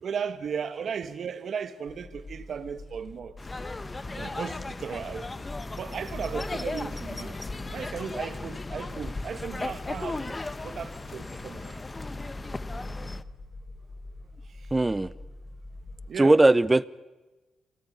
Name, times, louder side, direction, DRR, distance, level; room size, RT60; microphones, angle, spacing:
voice 1, 0.0-3.3 4.1-5.2 5.8-7.4 7.7-10.4 10.6-11.8 14.5-14.7 16.1-16.4, right 6 dB, 60° right, 1.5 m, -36 dB
sound 1, 1.9-16.1, left 2 dB, 50° left, 3.6 m, -44 dB
sound 2, 3.4-13.2, left 3 dB, 25° left, 1.0 m, -36 dB
voice 2, 14.7-15.1 16.2-16.9, right 2 dB, 15° right, 0.8 m, -19 dB
28.0 x 19.0 x 9.5 m
cardioid pair, 85°, 0 cm